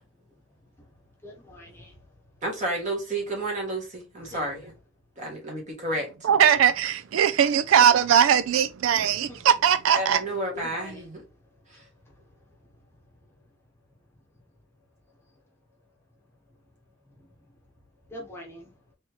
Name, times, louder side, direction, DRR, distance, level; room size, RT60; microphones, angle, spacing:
voice 1, 1.2-2.0 4.2-4.7 9.3-9.4 10.5-11.1 11.7-11.9 18.1-18.7, left 1 dB, 10° left, 1.0 m, -43 dB
voice 2, 2.4-4.7 5.2-6.1 9.9-11.2 11.7-11.8, right 1 dB, 40° right, 2.0 m, -31 dB
voice 3, 6.2-10.2, right 8 dB, 85° right, 0.3 m, -20 dB
4.2 x 3.4 x 3.0 m
head